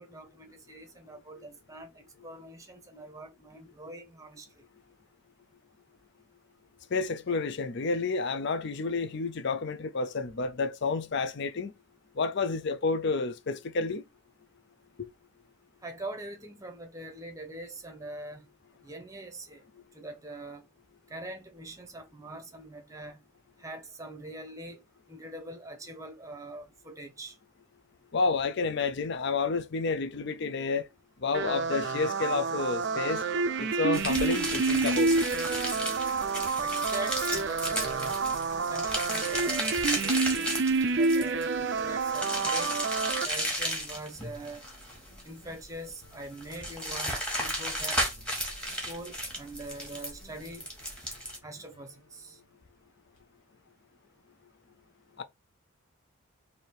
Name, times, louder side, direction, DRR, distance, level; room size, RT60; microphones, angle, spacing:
voice 1, 0.0-4.5 15.8-18.4 18.8-19.6 19.9-20.6 21.1-23.2 23.6-24.8 25.1-27.3 36.6-38.2 38.6-40.5 41.0-42.7 43.2-44.6 45.2-48.0 48.9-50.7 51.4-52.4, right 2 dB, 15° right, 0.8 m, -43 dB
voice 2, 6.9-11.7 12.2-14.0 15.0-15.1 28.1-30.9 31.2-33.2 33.6-35.1 55.2-55.3, left 4 dB, 50° left, 0.5 m, -30 dB
sound 1, 31.3-43.3, right 4 dB, 50° right, 0.4 m, -28 dB
sound 2, 33.9-51.4, equal, 5° left, 1.2 m, -34 dB
sound 3, 35.8-52.7 53.2-53.3, equal, 75° left, 1.8 m, -60 dB
3.3 x 2.7 x 4.4 m
head